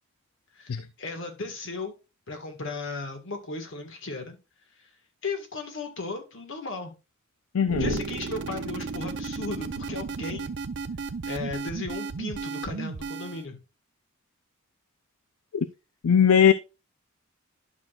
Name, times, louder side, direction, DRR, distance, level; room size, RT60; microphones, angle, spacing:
voice 1, 0.5-1.9 2.3-4.4 4.8-4.9 5.2-6.9 7.8-10.5 11.3-13.6, left 3 dB, 65° left, 1.7 m, -36 dB
voice 2, 7.5-8.0 15.5-15.7 16.0-16.5, left 8 dB, 80° left, 0.4 m, -20 dB
sound 1, 7.7-13.5, right 4 dB, 60° right, 0.6 m, -34 dB
11.0 x 6.2 x 2.4 m
head